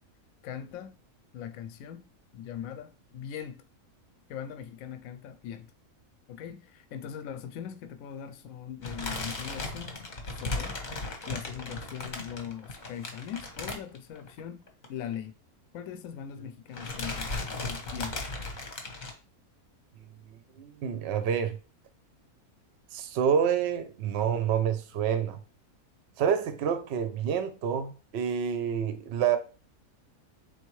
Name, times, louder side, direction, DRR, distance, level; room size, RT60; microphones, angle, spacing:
voice 1, 0.4-1.0 1.3-2.1 2.3-3.6 4.3-5.7 6.3-10.0 10.3-10.8 11.3-15.4 15.7-18.2, left 9 dB, 75° left, 1.0 m, -40 dB
sound 1, 8.8-14.4 14.7-14.9 15.1-15.2 16.2-16.5 16.7-19.1, left 3 dB, 40° left, 0.8 m, -36 dB
voice 2, 20.0-21.6 22.9-25.4 26.2-29.4, right 8 dB, 60° right, 0.7 m, -28 dB
4.4 x 3.4 x 3.1 m
omnidirectional pair, 1.5 m